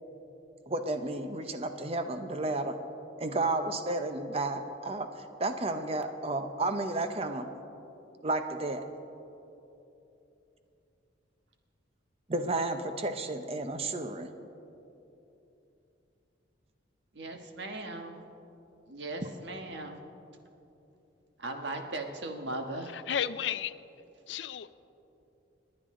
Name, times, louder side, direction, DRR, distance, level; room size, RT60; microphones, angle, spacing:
voice 1, 0.7-2.7 3.2-7.5 8.2-8.8 12.3-14.3 19.2-19.3, right 2 dB, 30° right, 8 dB, 0.7 m, -32 dB
voice 2, 17.1-18.2 18.9-20.0 21.4-22.9, right 2 dB, 65° right, 4 dB, 1.4 m, -38 dB
voice 3, 23.1-23.7 24.3-24.7, left 9 dB, 70° left, 15 dB, 0.4 m, -32 dB
28.5 x 9.7 x 3.8 m, 2.9 s
head